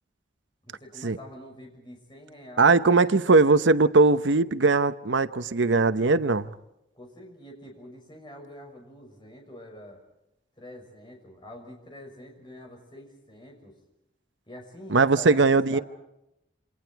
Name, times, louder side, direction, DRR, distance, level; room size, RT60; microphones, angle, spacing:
voice 1, 0.7-3.5 6.9-10.0 10.6-13.7 14.5-15.8, left 1 dB, 25° left, 1 dB, 6.4 m, -46 dB
voice 2, 2.6-6.5 14.9-15.8, right 3 dB, 85° right, 13 dB, 0.9 m, -20 dB
28.0 x 27.5 x 4.7 m, 0.86 s
head